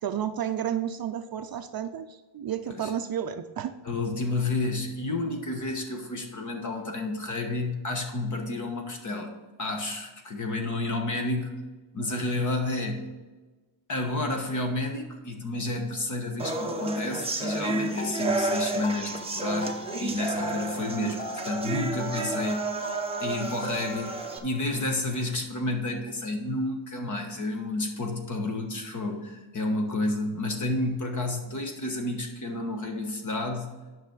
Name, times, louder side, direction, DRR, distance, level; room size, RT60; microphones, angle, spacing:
voice 1, 0.0-3.7 21.0-21.2, right 9 dB, 50° right, 8 dB, 0.5 m, -31 dB
voice 2, 3.8-11.6 11.9-13.0 13.9-22.9 23.2-33.8, left 2 dB, 40° left, 3 dB, 1.4 m, -30 dB
sound 1, 16.4-24.4, right 3 dB, 10° right, 0.7 m, -31 dB
sound 2, 17.9-25.4, left 2 dB, 20° left, 0.3 m, -42 dB
9.8 x 6.1 x 3.9 m, 1.2 s
wide cardioid pair, 165°, 49 cm